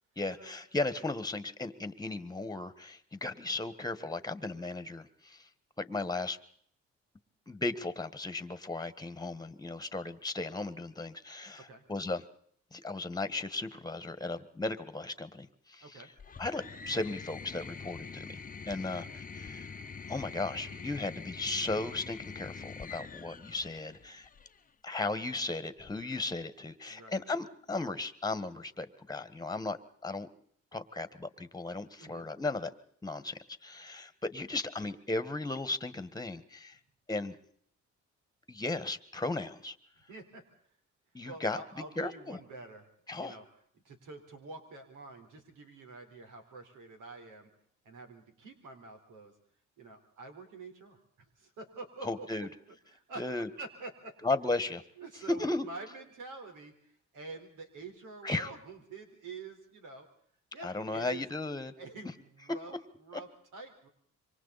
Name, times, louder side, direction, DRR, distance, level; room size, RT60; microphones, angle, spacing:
voice 1, 0.2-5.5 5.8-6.4 7.5-12.2 12.7-15.8 16.4-18.4 18.7-19.1 19.3-19.7 20.1-24.3 24.8-29.8 30.0-30.3 30.7-32.7 33.0-36.8 37.1-37.4 38.5-39.8 41.1-41.6 42.0-42.4 43.1-43.4 52.0-52.5 53.2-53.5 54.2-54.8 55.4-55.6 58.2-58.5 60.6-61.7, left 2 dB, 10° left, 12 dB, 1.6 m, -36 dB
sound 1, 16.2-24.6 25.8-26.4, left 5 dB, 30° left, 0.9 m, -45 dB
voice 2, 26.9-27.2 32.0-32.3 40.1-40.4 41.2-43.4 43.8-47.5 47.8-49.3 49.8-51.0 51.4-53.3 53.6-54.2 55.0-60.1 60.5-61.2 61.8-63.9, right 3 dB, 85° right, 5 dB, 4.3 m, -47 dB
27.0 x 24.5 x 4.2 m, 0.62 s
cardioid pair, 90°, 30 cm